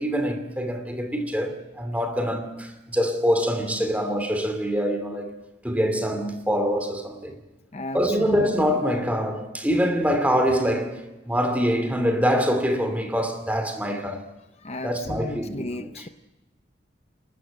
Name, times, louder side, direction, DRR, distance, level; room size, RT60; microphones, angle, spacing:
voice 1, 0.0-5.4 5.6-7.4 7.9-14.2 14.8-16.0, equal, 10° right, 2.6 m, -25 dB
voice 2, 7.7-8.8 14.6-16.1, left 2 dB, 35° left, 0.7 m, -35 dB
27.5 x 13.0 x 8.9 m
head